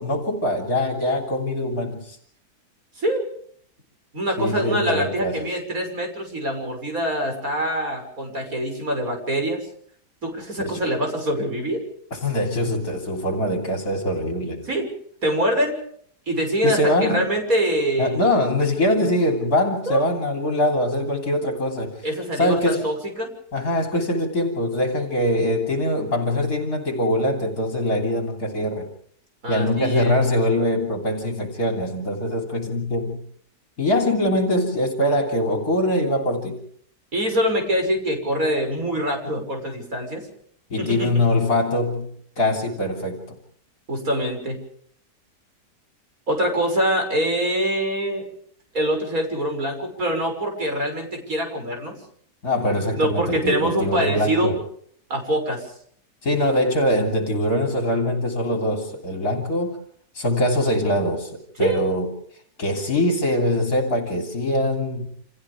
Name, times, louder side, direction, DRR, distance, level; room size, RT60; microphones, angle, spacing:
voice 1, 0.0-2.2 4.4-5.5 10.6-10.9 12.1-14.7 16.6-17.3 18.0-22.1 22.3-22.8 23.5-28.9 29.5-33.2 33.8-36.6 40.7-42.1 42.4-43.2 52.4-54.6 56.2-59.8 60.1-62.1 62.6-65.1, left 1 dB, 60° left, 3 dB, 3.8 m, -23 dB
voice 2, 3.0-3.3 4.1-9.6 10.2-11.8 14.7-14.9 15.2-15.8 16.3-18.2 19.9-20.0 22.0-23.3 29.4-30.1 37.1-40.3 40.8-41.1 43.9-44.6 46.3-48.2 48.7-51.9 52.9-54.5 55.1-55.7 61.6-61.8, equal, 55° right, 3 dB, 7.0 m, -24 dB
29.5 x 28.0 x 3.6 m, 0.62 s
omnidirectional pair, 1.8 m